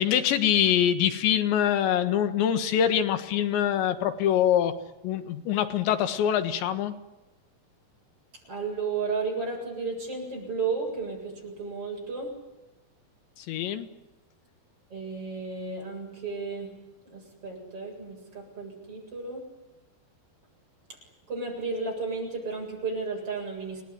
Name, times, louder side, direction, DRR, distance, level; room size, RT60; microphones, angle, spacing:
voice 1, 0.0-4.8 5.0-7.0 13.4-13.9, left 10 dB, 85° left, 9 dB, 3.8 m, -24 dB
voice 2, 8.3-12.3 14.9-16.7 17.1-19.5 20.9-21.0 21.3-23.8, right 4 dB, 30° right, 0 dB, 8.6 m, -33 dB
29.0 x 20.0 x 9.9 m, 0.98 s
omnidirectional pair, 5.0 m